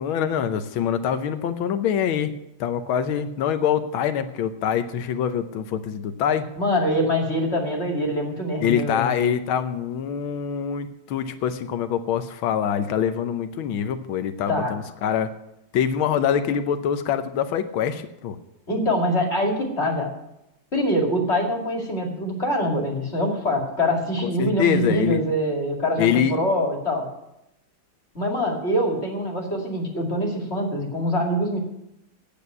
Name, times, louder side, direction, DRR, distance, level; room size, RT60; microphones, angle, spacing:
voice 1, 0.0-6.5 8.6-15.3 15.7-18.4 24.2-25.2 26.0-26.3, left 8 dB, 85° left, 10 dB, 1.6 m, -24 dB
voice 2, 6.6-9.1 14.5-14.7 18.7-20.1 20.7-27.1 28.1-31.6, equal, 30° left, 1 dB, 2.5 m, -24 dB
8.7 x 8.5 x 9.2 m, 0.85 s
omnidirectional pair, 2.2 m